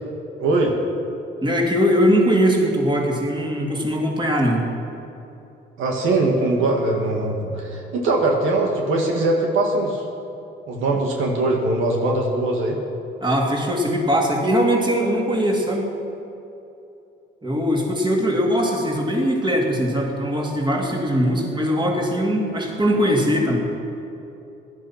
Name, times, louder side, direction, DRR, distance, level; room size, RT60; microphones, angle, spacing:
voice 1, 0.4-0.7 5.8-10.0 10.7-12.8, right 2 dB, 85° right, 0 dB, 2.1 m, -21 dB
voice 2, 1.4-4.6 13.2-15.9 17.4-23.6, equal, 25° right, -1 dB, 3.2 m, -20 dB
16.5 x 11.5 x 6.0 m, 2.9 s
cardioid pair, 90°, 20 cm